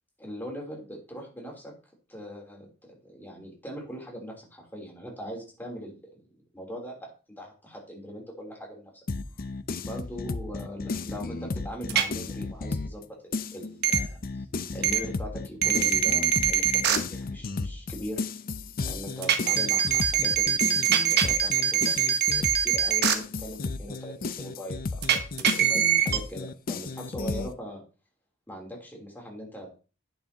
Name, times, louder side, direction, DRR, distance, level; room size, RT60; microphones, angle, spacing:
voice 1, 0.2-1.7 2.1-6.1 6.5-8.9 9.8-14.5 14.7-18.2 18.8-27.8 28.5-29.7, equal, 10° left, -1 dB, 3.4 m, -40 dB
sound 1, 9.1-13.0 13.3-27.5, left 3 dB, 45° left, 0.6 m, -33 dB
sound 2, 11.9-12.0 13.8-14.0 14.8-15.0 15.6-17.0 19.2-23.1 25.0-26.2, right 9 dB, 55° right, 1.1 m, -23 dB
11.0 x 8.9 x 2.9 m, 0.34 s
head